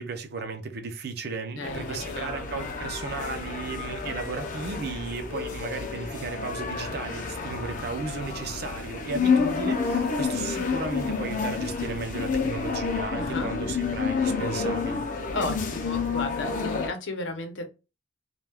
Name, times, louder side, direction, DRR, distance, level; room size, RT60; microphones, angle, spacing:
voice 1, 0.0-15.0, right 4 dB, 60° right, 0.6 m, -35 dB
voice 2, 1.6-2.6 13.1-13.5 15.3-17.7, left 2 dB, 80° left, 0.7 m, -34 dB
sound 1, 1.6-16.9, left 5 dB, 45° left, 0.5 m, -29 dB
2.3 x 2.2 x 3.3 m
head